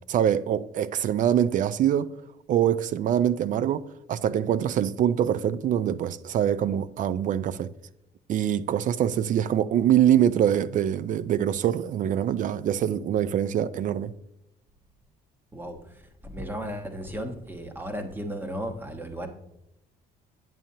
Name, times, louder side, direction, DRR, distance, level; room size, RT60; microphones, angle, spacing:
voice 1, 0.1-2.1 2.5-7.7 8.3-14.1, right 10 dB, 50° right, 0.4 m, -24 dB
voice 2, 16.2-19.3, equal, 10° right, 1.1 m, -34 dB
8.9 x 7.3 x 2.8 m
cardioid pair, 110°, 17 cm